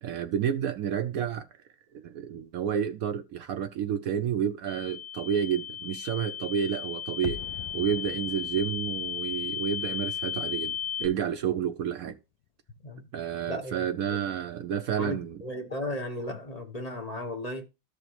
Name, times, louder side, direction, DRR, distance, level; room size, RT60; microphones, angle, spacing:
voice 1, 0.0-1.5 1.9-7.4 7.7-12.2 13.1-15.4, right 8 dB, 75° right, 0.7 m, -30 dB
sound 1, 4.7-11.1, left 9 dB, 15° left, 1.4 m, -35 dB
sound 2, 7.2-12.2 12.4-12.5, left 11 dB, 80° left, 1.3 m, -45 dB
voice 2, 15.0-17.7, left 1 dB, 45° left, 0.5 m, -35 dB
13.5 x 4.9 x 3.0 m
omnidirectional pair, 2.0 m